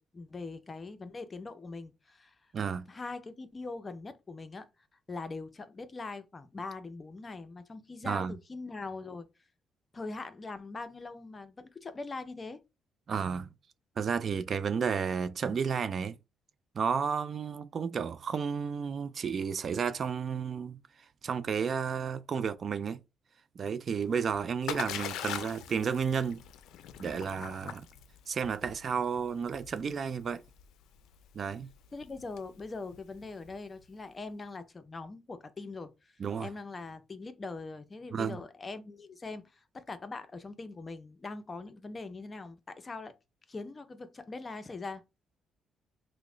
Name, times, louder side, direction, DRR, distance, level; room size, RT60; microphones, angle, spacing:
voice 1, 0.0-2.4 2.9-4.7 5.1-9.3 9.9-12.6 31.9-36.1 36.4-43.1 43.5-45.0, left 3 dB, 30° left, 0.5 m, -42 dB
voice 2, 2.5-2.9 8.1-8.4 13.1-13.5 14.0-16.2 16.8-20.8 21.2-23.0 23.6-26.4 27.0-27.8 28.3-30.4 31.3-31.7 36.2-36.5 38.1-38.4, right 6 dB, 50° right, 0.3 m, -32 dB
Splash splatter, 24.0-33.8, left 10 dB, 85° left, 0.4 m, -43 dB
3.0 x 2.1 x 3.7 m
cardioid pair, 90°, 0 cm